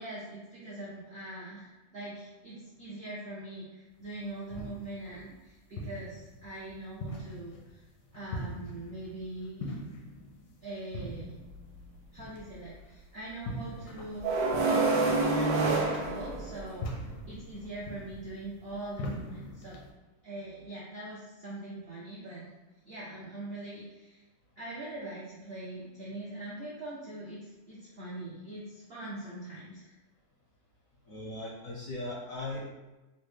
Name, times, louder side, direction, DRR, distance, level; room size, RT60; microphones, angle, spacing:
voice 1, 0.0-7.8 8.1-9.7 10.6-11.3 12.1-16.9 17.3-19.8 20.2-22.5 22.8-24.2 24.6-29.9, right 1 dB, 65° right, -7 dB, 0.6 m, -42 dB
sound 1, 4.0-19.9, equal, 85° left, 1.3 m, -43 dB
sound 2, 11.1-11.2 14.2-16.9, right 3 dB, 85° right, 1.3 m, -27 dB
voice 2, 31.1-32.7, left 2 dB, 70° left, -4 dB, 0.8 m, -38 dB
4.0 x 2.1 x 3.1 m, 1.1 s
omnidirectional pair, 1.9 m